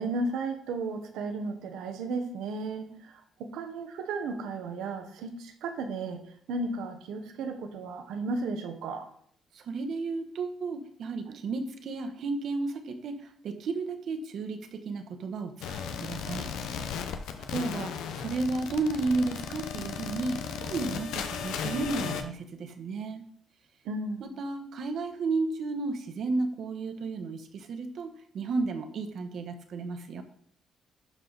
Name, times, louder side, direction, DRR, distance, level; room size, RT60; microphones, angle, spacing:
voice 1, 0.0-3.1 3.4-6.2 6.5-9.1 11.3-11.4 23.8-24.2, right 3 dB, 90° right, 7 dB, 1.1 m, -34 dB
voice 2, 9.5-16.9 17.4-23.2 24.2-30.2, right 3 dB, 65° right, 7 dB, 1.2 m, -33 dB
sound 1, 15.6-22.2, left 7 dB, 85° left, 0.8 m, -36 dB
12.0 x 4.8 x 4.1 m, 0.65 s
cardioid pair, 90°, 0 cm